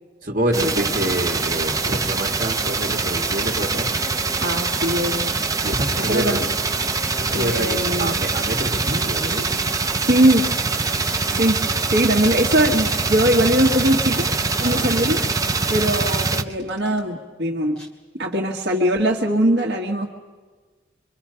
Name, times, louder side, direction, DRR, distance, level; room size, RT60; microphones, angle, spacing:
voice 1, 0.2-3.9 5.6-6.4 7.3-9.5 14.6-14.9, right 1 dB, 50° right, 2 dB, 2.2 m, -26 dB
sound 1, 0.5-16.4, right 4 dB, 20° right, 0.7 m, -23 dB
voice 2, 4.4-5.3 6.0-6.4 7.3-8.2 9.9-10.4 11.2-11.6 11.9-15.2 15.7-17.8 18.2-20.1, right 1 dB, 65° right, 0 dB, 1.6 m, -21 dB
Packing tape duct tape, 10.2-11.7 11.9-17.0 17.8-17.9, right 1 dB, 5° left, 2.6 m, -43 dB
25.0 x 25.0 x 5.7 m, 1.4 s
head